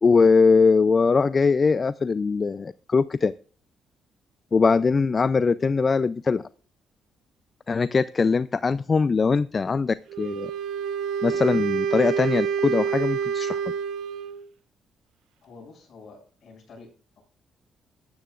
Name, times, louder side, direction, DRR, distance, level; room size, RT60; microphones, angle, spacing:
voice 1, 0.0-3.3 4.5-6.4 7.7-10.5 11.2-13.6, left 4 dB, 35° left, 16 dB, 0.4 m, -21 dB
Wind instrument woodwind instrument, 10.1-14.4, right 7 dB, 80° right, 0.8 m, -27 dB
voice 2, 15.4-17.2, left 4 dB, 55° left, 0 dB, 6.4 m, -48 dB
14.0 x 10.0 x 2.4 m, 0.42 s
cardioid pair, 90°, 0 cm